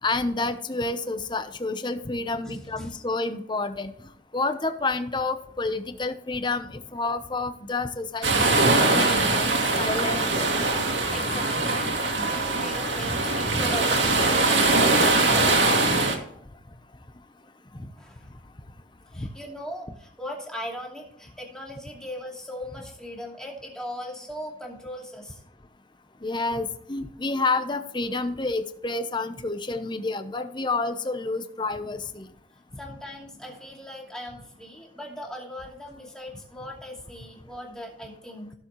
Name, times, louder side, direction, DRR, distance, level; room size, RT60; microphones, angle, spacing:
voice 1, 0.0-9.4 9.8-10.3 17.7-17.9 19.1-19.3 26.2-32.3, left 3 dB, 25° left, 9 dB, 0.8 m, -29 dB
voice 2, 2.4-3.0 10.1-15.7 18.0-18.3 19.1-25.4 32.8-38.5, left 1 dB, 5° left, -2 dB, 2.6 m, -39 dB
sound 1, 8.2-16.1, right 2 dB, 70° right, 2.4 m, -22 dB
16.5 x 7.0 x 3.1 m, 0.71 s
head